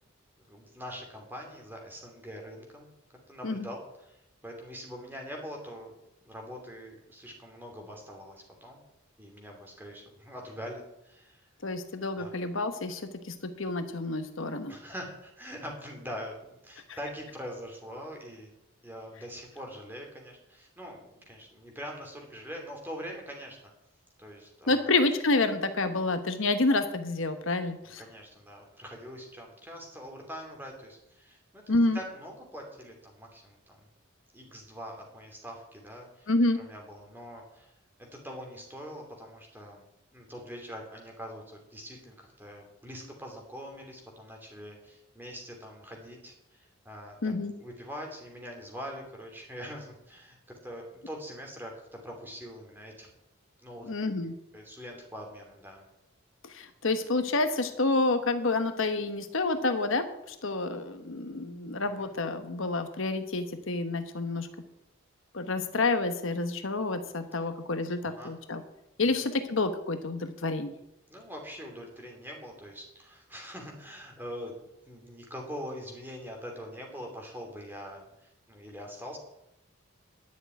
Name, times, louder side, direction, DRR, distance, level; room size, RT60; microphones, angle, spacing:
voice 1, 0.4-2.9 3.3-4.2 4.4-6.0 6.2-8.8 9.2-11.5 12.2-12.3 14.7-18.5 18.8-23.6 24.2-24.9 28.0-33.9 34.3-36.3 36.5-37.7 38.1-39.8 40.1-53.1 53.6-53.9 54.5-55.9 62.0-62.1 68.2-68.3 69.0-69.1 71.1-79.2, equal, 10° right, 1 dB, 2.7 m, -43 dB
voice 2, 11.6-13.0 13.3-14.8 24.7-28.0 31.7-32.0 36.3-36.6 47.2-47.5 53.9-54.3 56.5-60.0 60.4-64.5 65.3-68.6 69.0-70.7, left 2 dB, 70° left, 8 dB, 1.1 m, -28 dB
11.0 x 6.5 x 9.3 m, 0.85 s
head